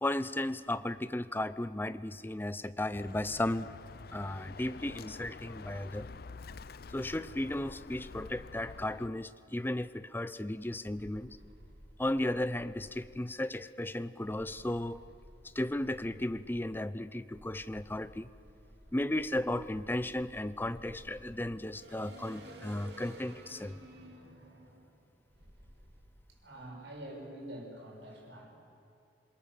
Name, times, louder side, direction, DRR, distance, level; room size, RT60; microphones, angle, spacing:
voice 1, 0.0-3.7 4.1-6.1 6.9-11.3 12.0-15.0 15.6-18.3 18.9-23.8, left 1 dB, 10° left, 14 dB, 0.6 m, -35 dB
Bird, 2.9-9.1, left 4 dB, 60° left, 0.6 m, -48 dB
sound 1, 10.9-13.2 14.2-16.8 17.3-26.1, right 1 dB, 70° right, 3.2 m, -54 dB
voice 2, 26.4-28.5, right 1 dB, 85° right, -1 dB, 7.0 m, -46 dB
27.0 x 22.5 x 7.2 m, 2.7 s
head